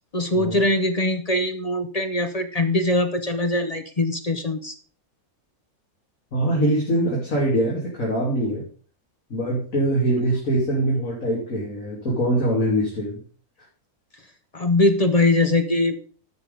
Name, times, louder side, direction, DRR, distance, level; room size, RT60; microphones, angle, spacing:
voice 1, 0.1-4.7 14.5-16.0, left 2 dB, 35° left, 8 dB, 0.7 m, -22 dB
voice 2, 6.3-8.6 9.3-13.2, right 1 dB, 60° left, -4 dB, 3.1 m, -23 dB
11.0 x 6.4 x 5.2 m, 0.41 s
omnidirectional pair, 1.6 m